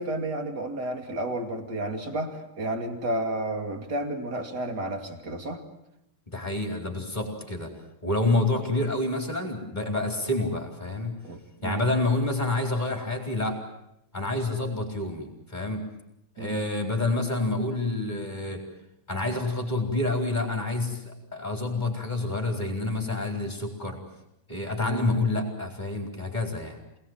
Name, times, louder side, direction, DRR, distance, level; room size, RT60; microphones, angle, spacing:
voice 1, 0.0-5.6 11.2-11.8 16.4-16.6 24.8-25.1, right 1 dB, 30° right, 6 dB, 2.5 m, -31 dB
voice 2, 6.3-7.7 8.0-11.2 11.6-13.6 14.1-15.8 16.4-18.6 19.1-24.0 24.5-26.8, left 2 dB, 10° left, 2 dB, 4.0 m, -28 dB
27.5 x 19.5 x 9.2 m, 0.82 s
omnidirectional pair, 4.1 m